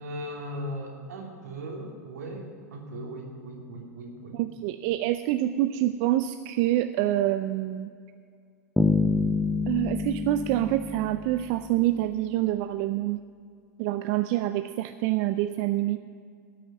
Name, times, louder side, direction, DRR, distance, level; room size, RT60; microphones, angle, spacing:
voice 1, 0.0-4.4, equal, 80° right, 0 dB, 2.5 m, -38 dB
voice 2, 4.3-7.9 9.7-13.2 13.8-16.1, right 14 dB, 55° right, 10 dB, 0.4 m, -26 dB
sound 1, 8.8-11.8, left 3 dB, 5° left, 0.6 m, -27 dB
12.5 x 6.3 x 8.9 m, 2.2 s
hypercardioid pair, 100°, 9 cm